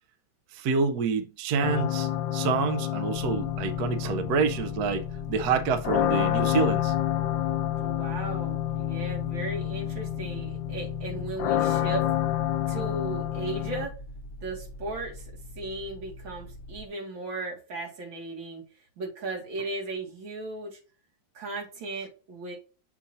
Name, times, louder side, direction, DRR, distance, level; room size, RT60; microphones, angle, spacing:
voice 1, 0.5-6.9, right 5 dB, 65° right, 1.1 m, -27 dB
sound 1, 1.6-13.9, left 12 dB, 85° left, 1.4 m, -29 dB
sound 2, 3.1-16.8, equal, 50° left, 1.1 m, -43 dB
voice 2, 7.8-12.1 12.7-14.0 14.4-15.3 15.6-18.6 19.0-20.8 21.3-22.5, right 2 dB, 90° right, 2.8 m, -36 dB
7.2 x 2.7 x 5.4 m
omnidirectional pair, 2.1 m